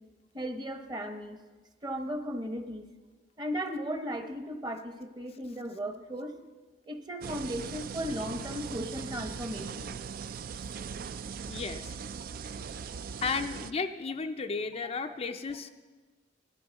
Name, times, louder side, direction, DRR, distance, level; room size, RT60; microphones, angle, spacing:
voice 1, 0.3-1.4 1.8-2.8 3.4-6.3 6.9-9.9, equal, 25° right, 6 dB, 0.9 m, -36 dB
sound 1, 7.2-13.7, right 6 dB, 50° right, 0.3 m, -40 dB
voice 2, 11.5-11.9 13.2-15.7, left 4 dB, 35° left, 6 dB, 0.4 m, -33 dB
17.5 x 12.5 x 4.1 m, 1.3 s
head